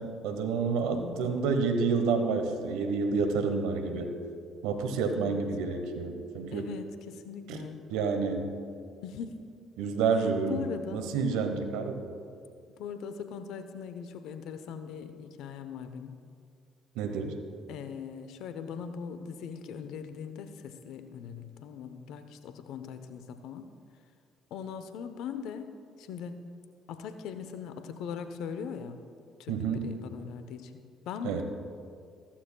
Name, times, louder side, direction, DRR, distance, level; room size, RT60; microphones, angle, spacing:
voice 1, 0.0-4.1 4.6-6.7 7.5-7.6 7.9-8.6 9.8-10.6 10.9-12.2 17.0-17.3 29.5-29.8 31.2-31.4, right 5 dB, 75° right, 6 dB, 1.0 m, -29 dB
voice 2, 0.9-1.2 5.1-5.4 6.5-7.8 9.0-9.4 10.2-11.0 12.8-16.1 17.7-23.7 24.5-26.5 26.9-29.0 29.4-31.4, left 7 dB, 70° left, 9 dB, 0.8 m, -40 dB
14.5 x 14.5 x 2.3 m, 2.3 s
hypercardioid pair, 55°, 0 cm